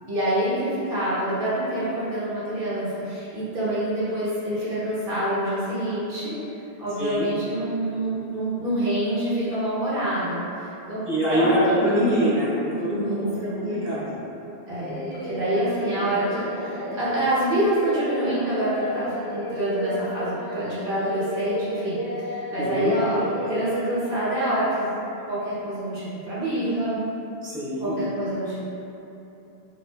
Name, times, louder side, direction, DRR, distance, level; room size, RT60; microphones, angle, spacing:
voice 1, 0.1-6.4 6.8-10.4 10.9-11.0 11.3-12.0 12.9-14.0 14.7-22.0 22.5-24.9 25.3-27.0 27.8-28.5, right 1 dB, 60° right, -11 dB, 1.0 m, -26 dB
voice 2, 11.1-14.1 22.6-22.9 27.4-27.9, equal, 15° right, -12 dB, 0.6 m, -24 dB
Singing, 14.8-24.2, equal, 55° left, 1.0 m, -33 dB
2.4 x 2.4 x 2.2 m, 2.8 s
omnidirectional pair, 1.1 m